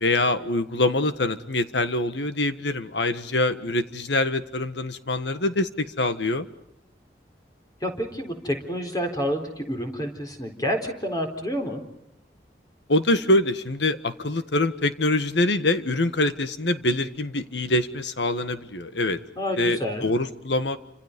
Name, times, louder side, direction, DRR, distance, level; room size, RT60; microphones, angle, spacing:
voice 1, 0.0-6.5 12.9-19.2 19.6-20.8, left 2 dB, 85° left, 10 dB, 1.6 m, -24 dB
voice 2, 7.8-11.8 19.4-20.1, equal, 20° left, 4 dB, 4.1 m, -29 dB
28.5 x 26.5 x 5.3 m, 0.82 s
head